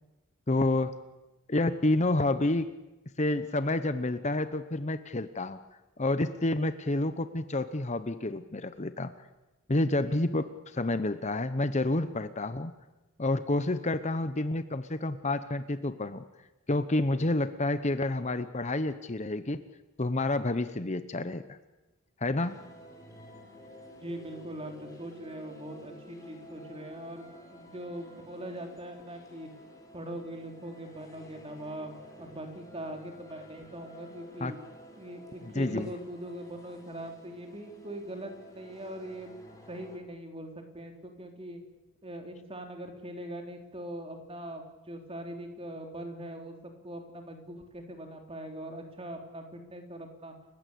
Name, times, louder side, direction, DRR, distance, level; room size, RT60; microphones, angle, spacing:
voice 1, 0.5-0.9 1.5-2.7 3.2-5.6 6.0-9.1 9.7-12.7 13.2-16.2 16.7-19.6 20.0-21.6 22.2-22.6 34.4-34.5 35.6-35.9, left 2 dB, 30° left, 11 dB, 0.9 m, -29 dB
sound 1, 22.4-40.0, equal, 15° left, 4.0 m, -52 dB
voice 2, 23.9-29.5 29.9-34.6 35.0-39.4 39.7-41.6 42.0-50.3, right 1 dB, 25° right, 4 dB, 3.5 m, -41 dB
29.5 x 15.5 x 8.6 m, 1.0 s
head